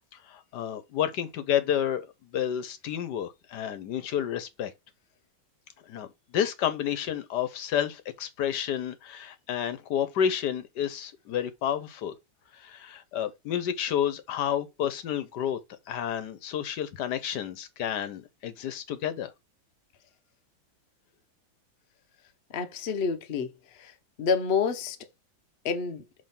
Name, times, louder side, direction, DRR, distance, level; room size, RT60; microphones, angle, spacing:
voice 1, 0.3-4.7 5.9-6.1 6.3-12.1 12.6-15.6 15.9-19.3, left 9 dB, 70° left, 1.2 m, -30 dB
voice 2, 22.5-23.5 23.8-23.9 24.2-25.0 25.6-26.0, left 5 dB, 50° left, 0.7 m, -28 dB
5.4 x 3.5 x 5.7 m
omnidirectional pair, 2.0 m